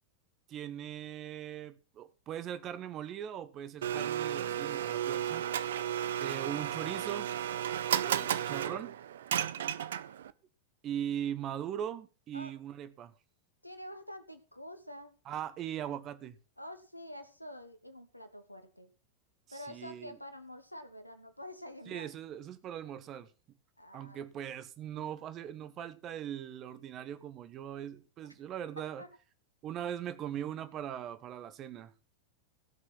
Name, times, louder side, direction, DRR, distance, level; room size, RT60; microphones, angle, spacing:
voice 1, 0.5-5.4 6.2-7.3 8.0-9.0 10.8-13.1 15.3-16.4 19.5-20.2 21.9-23.3 23.9-29.0 29.6-31.9, right 10 dB, 30° right, 1.2 m, -40 dB
Domestic sounds home sounds, 3.8-10.3, right 10 dB, 60° right, 0.6 m, -33 dB
voice 2, 5.8-6.3 12.3-12.5 13.6-15.1 16.6-18.9 19.5-22.1 23.8-24.3 29.0-29.1, equal, 90° left, 1.4 m, -47 dB
16.5 x 6.2 x 6.1 m
figure-of-eight pair, 90°, 0 cm